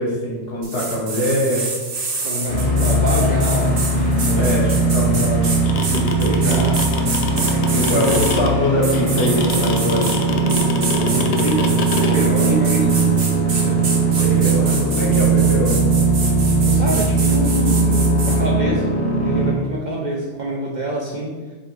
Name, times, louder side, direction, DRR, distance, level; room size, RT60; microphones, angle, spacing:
voice 1, 0.0-1.6 4.4-6.6 7.7-10.1 14.2-15.8, equal, 55° left, -4 dB, 1.3 m, -23 dB
sound 1, 0.6-8.3 8.8-10.2 10.5-18.4, right 3 dB, 75° right, 1.2 m, -27 dB
voice 2, 2.2-4.6 5.0-5.4 6.2-8.0 11.0-13.8 14.3-14.5 16.4-21.4, right 1 dB, 50° right, -3 dB, 0.6 m, -26 dB
sound 2, 2.5-19.5, right 3 dB, 35° left, 0.7 m, -19 dB
sound 3, 5.4-12.1, left 4 dB, 85° left, 0.3 m, -26 dB
3.6 x 3.0 x 4.6 m, 1.3 s
omnidirectional pair, 1.2 m